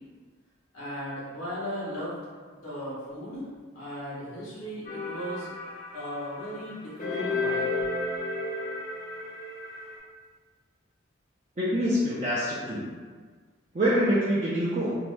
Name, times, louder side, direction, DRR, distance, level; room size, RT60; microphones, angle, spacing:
voice 1, 0.7-2.2 2.5-3.5 3.7-5.5 5.9-7.7, equal, 90° left, -7 dB, 1.0 m, -36 dB
sound 1, 4.8-10.0, left 3 dB, 40° left, 0.5 m, -33 dB
voice 2, 11.6-12.9 13.7-15.0, equal, 35° right, -9 dB, 0.4 m, -25 dB
2.6 x 2.3 x 3.1 m, 1.5 s
head